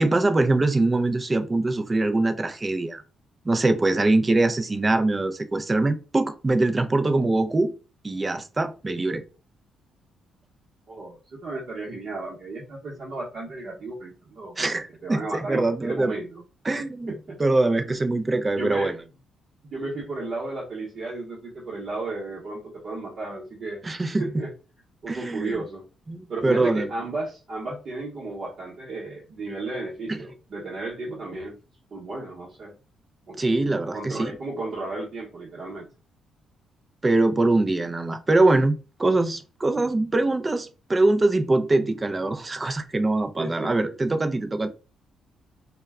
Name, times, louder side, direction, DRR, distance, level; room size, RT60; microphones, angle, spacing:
voice 1, 0.0-3.0 3.5-7.7 8.0-9.2 14.6-16.1 16.6-17.1 17.4-18.9 23.8-24.2 25.1-25.6 26.1-26.9 30.1-30.2 33.4-34.3 37.0-38.7 39.0-44.7, right 2 dB, 25° right, 0.4 m, -23 dB
voice 2, 10.9-14.5 15.0-16.4 17.1-17.4 17.9-18.0 18.3-18.9 19.7-23.9 24.2-24.5 25.0-25.8 26.3-31.6 31.9-32.7 33.3-33.5 33.9-35.9 43.4-43.9, right 2 dB, 50° right, 0.9 m, -34 dB
2.2 x 2.1 x 3.5 m
cardioid pair, 90°, 0 cm